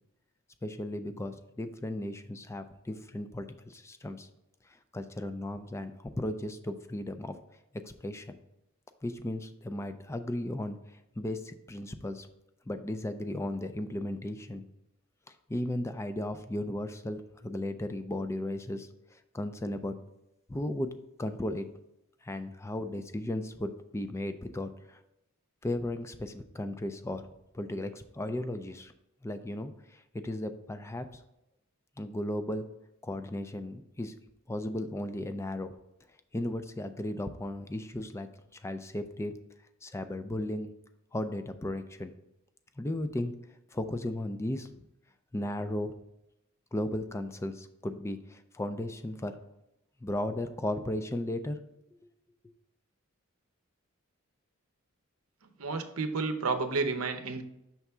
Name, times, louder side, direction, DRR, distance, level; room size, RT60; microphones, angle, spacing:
voice 1, 0.6-4.3 4.9-7.4 7.8-8.4 9.0-12.3 12.7-14.6 15.5-20.0 20.5-20.9 21.2-21.7 22.2-25.0 25.6-27.3 27.5-28.9 29.2-31.2 32.0-32.7 33.0-34.1 34.5-35.7 36.3-39.4 39.8-40.7 41.1-42.1 42.8-43.3 43.7-44.7 45.3-45.9 46.7-49.4 50.0-51.6, left 1 dB, 15° left, 9 dB, 0.4 m, -35 dB
voice 2, 55.6-57.4, right 4 dB, 80° right, 7 dB, 0.7 m, -31 dB
5.9 x 3.5 x 5.5 m, 0.86 s
head